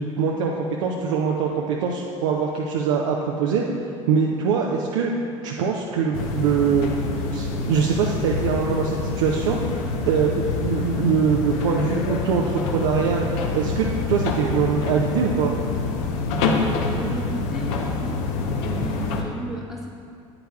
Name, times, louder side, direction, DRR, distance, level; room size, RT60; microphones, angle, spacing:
voice 1, 0.0-3.6 4.1-6.9 7.3-9.6 10.1-15.6, right 6 dB, 65° right, -1 dB, 0.6 m, -23 dB
sound 1, 6.1-19.2, left 3 dB, 60° left, 0.8 m, -26 dB
voice 2, 16.6-18.2 18.6-19.9, equal, ahead, -2 dB, 0.9 m, -34 dB
9.1 x 8.8 x 2.3 m, 2.5 s
figure-of-eight pair, 70°, 17 cm